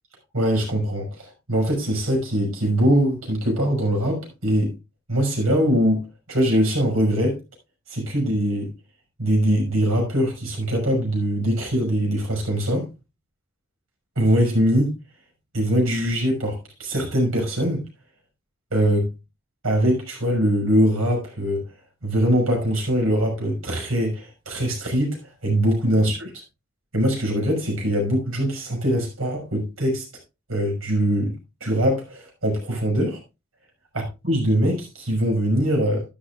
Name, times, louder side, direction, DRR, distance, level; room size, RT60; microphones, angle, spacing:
voice 1, 0.3-4.7 5.1-7.4 7.9-8.7 9.2-12.9 14.2-15.0 15.5-17.8 18.7-19.1 19.6-21.6 22.0-26.3 26.9-30.0 30.5-31.3 31.6-33.2 34.2-36.0, equal, 85° right, 5.9 m, -22 dB
12.5 x 11.0 x 2.5 m
head